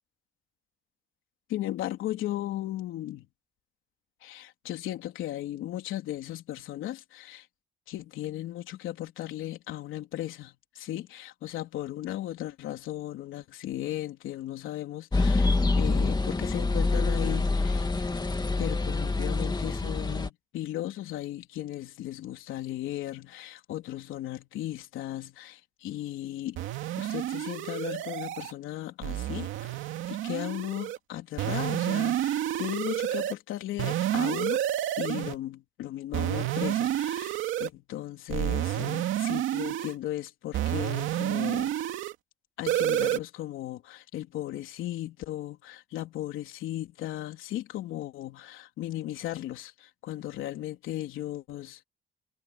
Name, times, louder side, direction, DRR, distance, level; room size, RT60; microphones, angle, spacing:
voice 1, 1.5-3.3 4.2-7.5 7.9-17.9 18.6-26.6 27.0-29.8 30.1-34.6 35.0-42.0 42.6-51.8, left 14 dB, 85° left, 3.7 m, -36 dB
sound 1, 15.1-20.3, left 3 dB, 20° left, 2.7 m, -26 dB
sound 2, 26.6-28.5 29.0-31.0 31.4-33.3 33.8-35.4 36.1-37.7 38.3-40.0 40.5-42.1 42.7-43.2, right 12 dB, 85° right, 2.5 m, -29 dB
cardioid pair, 90°, 20 cm